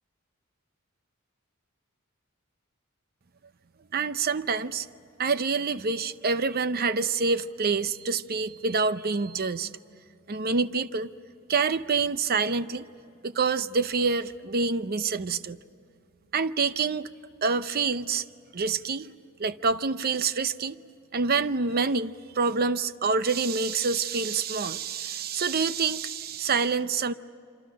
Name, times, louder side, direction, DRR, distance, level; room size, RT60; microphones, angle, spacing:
voice 1, 3.9-4.9 5.2-9.7 10.3-11.1 11.5-12.8 13.2-15.6 16.3-17.1 17.4-18.2 18.5-19.1 19.4-20.8 21.1-27.1, right 4 dB, 45° right, 13 dB, 0.7 m, -27 dB
28.0 x 26.0 x 6.5 m, 2.6 s
head